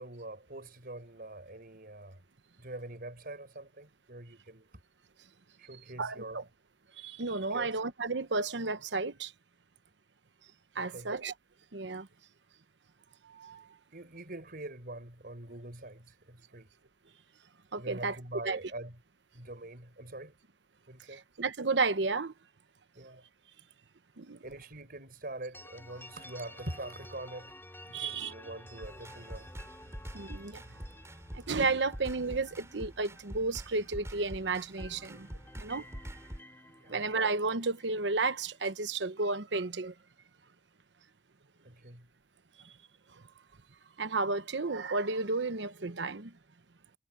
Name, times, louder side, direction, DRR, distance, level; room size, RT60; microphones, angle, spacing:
voice 1, 0.0-2.2 2.6-4.7 5.6-6.4 7.5-7.8 10.8-11.1 13.9-16.7 17.8-19.0 19.3-20.3 20.9-21.2 23.0-23.2 24.4-27.6 27.9-29.5 36.8-37.0 41.6-42.1, right 2 dB, 55° right, 5.4 m, -44 dB
voice 2, 6.0-6.4 7.0-9.3 10.7-11.3 11.7-12.1 13.2-13.7 17.7-18.2 18.4-18.6 21.1-22.3 24.2-24.4 27.9-28.3 30.1-30.6 31.3-36.2 36.9-39.9 42.6-42.7 43.1-43.2 44.0-46.3, right 3 dB, 75° right, 1.0 m, -32 dB
sound 1, 25.5-34.3 34.6-38.7, left 1 dB, 15° left, 2.7 m, -53 dB
sound 2, 28.8-36.4, equal, 15° right, 6.5 m, -46 dB
head